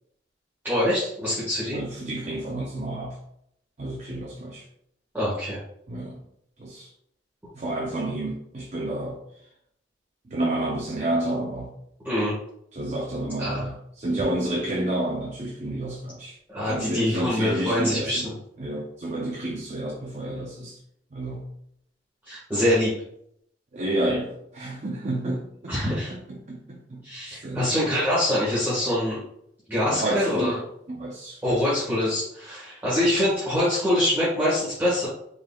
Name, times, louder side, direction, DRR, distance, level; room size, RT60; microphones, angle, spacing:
voice 1, 0.6-1.8 5.1-5.6 12.0-12.3 13.4-13.6 16.5-18.3 22.2-22.9 25.7-26.1 27.0-29.2 29.7-30.5 31.4-35.1, left 1 dB, 10° right, -10 dB, 1.5 m, -24 dB
voice 2, 1.7-3.2 3.8-4.7 5.9-6.2 6.6-6.9 7.5-9.2 10.3-11.7 12.7-16.4 16.7-18.3 18.6-20.8 21.1-21.5 23.7-26.0 26.3-27.0 27.4-27.7 29.9-31.6, right 1 dB, 40° right, -1 dB, 0.6 m, -30 dB
4.7 x 3.8 x 2.3 m, 0.73 s
head